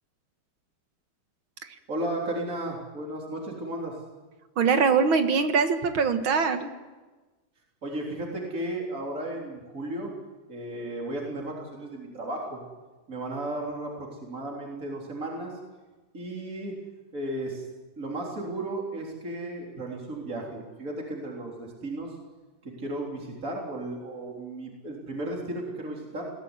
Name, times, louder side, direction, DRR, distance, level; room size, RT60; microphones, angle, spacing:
voice 1, 1.9-3.9 7.8-10.1 10.5-12.6 13.1-15.5 16.1-16.7 17.1-17.7 18.0-22.2 22.6-26.2, right 1 dB, 40° right, -2 dB, 4.1 m, -34 dB
voice 2, 4.6-6.7, right 5 dB, 80° right, 7 dB, 2.4 m, -22 dB
21.0 x 17.5 x 9.8 m, 1.2 s
omnidirectional pair, 2.2 m